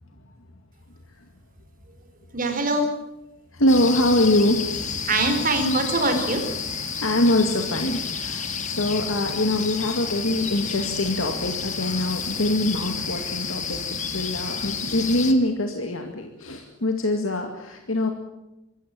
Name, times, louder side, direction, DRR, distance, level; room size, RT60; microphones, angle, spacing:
voice 1, 2.3-3.0 5.1-6.5, right 2 dB, 40° right, 6 dB, 4.2 m, -23 dB
voice 2, 3.5-4.6 7.0-18.1, left 1 dB, 75° left, 4 dB, 2.2 m, -24 dB
sound 1, 3.7-15.3, left 6 dB, 35° left, 2.0 m, -30 dB
25.5 x 14.5 x 8.9 m, 0.97 s
head